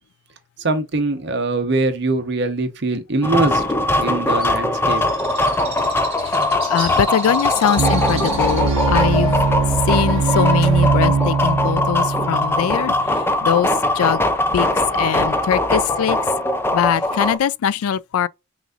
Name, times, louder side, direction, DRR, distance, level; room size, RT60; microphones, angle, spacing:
voice 1, 0.6-3.6 4.0-5.0, right 2 dB, 50° right, 0.8 m, -22 dB
sound 1, 3.2-17.4, left 2 dB, 10° left, 0.4 m, -21 dB
Bird, 4.4-11.6, right 4 dB, 30° right, 1.7 m, -36 dB
voice 2, 6.7-9.5 9.9-13.7 14.0-14.2 14.5-16.2 16.7-18.3, left 8 dB, 85° left, 0.3 m, -21 dB
sound 2, 7.8-13.1, right 4 dB, 85° right, 0.6 m, -20 dB
5.9 x 2.6 x 2.4 m
head